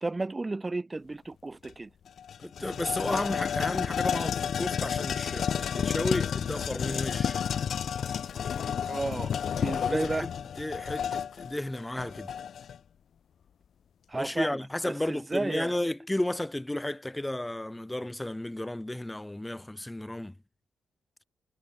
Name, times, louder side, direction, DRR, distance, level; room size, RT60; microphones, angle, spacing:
voice 1, 0.0-1.9 8.8-9.3 9.6-10.3 14.1-14.6 14.9-15.8, right 2 dB, 20° right, 2.1 m, -33 dB
sound 1, 1.6-1.7 2.1-12.8, left 8 dB, 65° left, 3.5 m, -31 dB
voice 2, 2.4-7.4 9.8-10.3 10.6-12.3 14.1-20.3, left 1 dB, 10° left, 4.7 m, -33 dB
cardioid pair, 100°, 0 cm